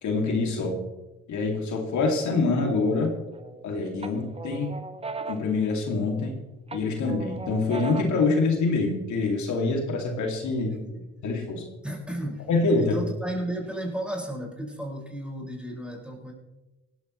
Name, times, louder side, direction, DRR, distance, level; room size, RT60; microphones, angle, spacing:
voice 1, 0.0-0.8 1.3-3.1 3.6-4.7 5.3-6.3 6.7-10.7 11.2-11.6 12.5-12.9, left 3 dB, 70° left, 1 dB, 2.6 m, -25 dB
sound 1, 3.0-3.6 4.0-6.3 6.7-8.3, right 4 dB, 20° right, 1.0 m, -37 dB
voice 2, 10.6-11.1 11.8-12.5 12.8-16.3, right 1 dB, 5° right, -3 dB, 5.6 m, -34 dB
18.0 x 14.0 x 3.2 m, 1.1 s
cardioid pair, 90°, 30 cm